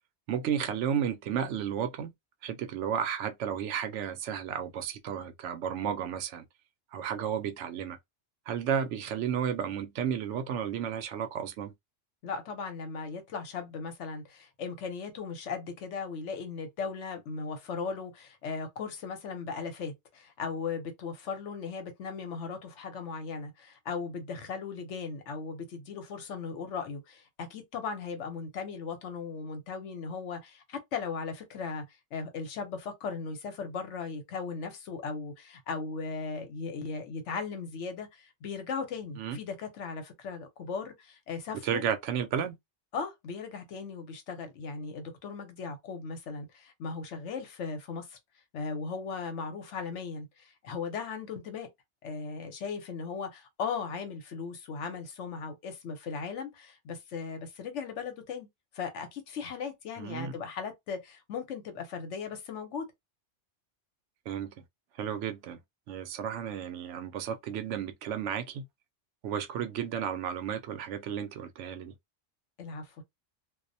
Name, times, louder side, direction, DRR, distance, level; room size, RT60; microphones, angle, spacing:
voice 1, 0.3-2.1 2.4-6.4 6.9-8.0 8.5-11.7 39.2-39.4 41.6-42.6 60.0-60.3 64.3-64.5 65.0-65.6 65.9-68.6 69.2-71.9, right 8 dB, 80° right, 0.9 m, -33 dB
voice 2, 12.2-31.8 32.1-41.8 42.9-48.2 48.5-51.7 52.0-58.5 58.7-62.9 72.6-73.0, left 5 dB, 80° left, 1.1 m, -37 dB
2.4 x 2.0 x 2.6 m
omnidirectional pair, 1.2 m